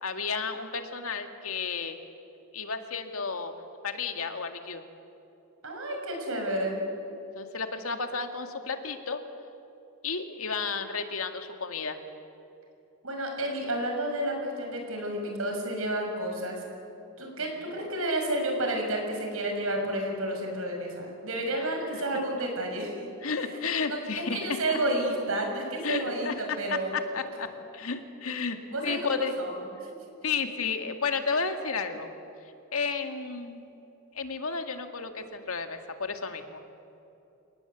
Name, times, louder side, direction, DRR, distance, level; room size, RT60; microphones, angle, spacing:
voice 1, 0.0-2.0 2.5-3.5 3.8-4.8 7.4-9.2 10.0-12.0 21.9-22.0 23.2-24.8 25.8-29.3 30.2-32.1 32.7-33.6 34.1-36.6, left 5 dB, 75° left, 6 dB, 2.0 m, -32 dB
voice 2, 5.6-6.8 13.0-16.6 17.2-23.1 23.4-26.9 28.7-29.6 29.9-30.0, right 1 dB, 75° right, 2 dB, 6.4 m, -31 dB
29.0 x 19.0 x 8.1 m, 2.9 s
head